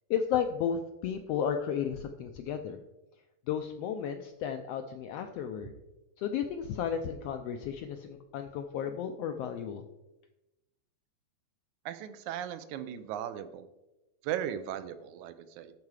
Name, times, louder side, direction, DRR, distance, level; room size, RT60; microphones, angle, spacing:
voice 1, 0.1-2.8 3.5-5.7 6.2-9.8, left 8 dB, 85° left, 6 dB, 1.4 m, -33 dB
voice 2, 11.9-13.7 14.2-15.7, right 10 dB, 90° right, 11 dB, 2.1 m, -37 dB
12.5 x 4.7 x 4.8 m, 1.0 s
omnidirectional pair, 3.3 m